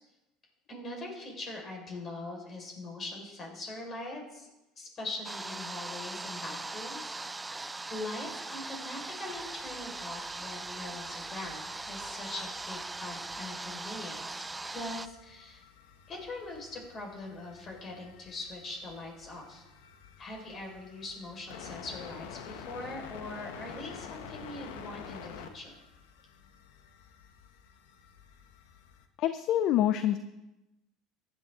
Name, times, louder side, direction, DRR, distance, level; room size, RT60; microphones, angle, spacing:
voice 1, 0.7-4.5 4.8-7.6 7.9-15.6 16.1-19.6 20.2-25.8, left 2 dB, 40° left, 1 dB, 4.9 m, -42 dB
sound 1, 5.2-15.1, right 3 dB, 15° right, 0.3 m, -40 dB
sound 2, 9.3-29.1, left 7 dB, 80° left, 1.1 m, -50 dB
voice 2, 29.2-30.2, left 12 dB, 60° left, 11 dB, 0.5 m, -26 dB
15.0 x 10.5 x 3.8 m, 0.97 s
hypercardioid pair, 85°, 0 cm